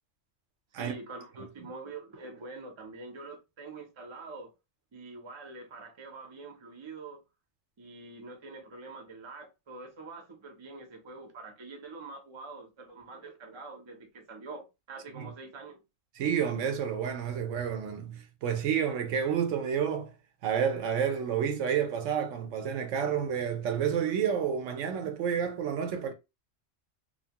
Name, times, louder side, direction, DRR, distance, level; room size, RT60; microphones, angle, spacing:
voice 1, 0.7-4.5 4.9-7.2 7.8-15.8, right 3 dB, 30° right, 0.6 m, -45 dB
voice 2, 16.2-20.1 20.4-26.1, right 8 dB, 80° right, 0.9 m, -30 dB
2.8 x 2.2 x 2.8 m
omnidirectional pair, 1.3 m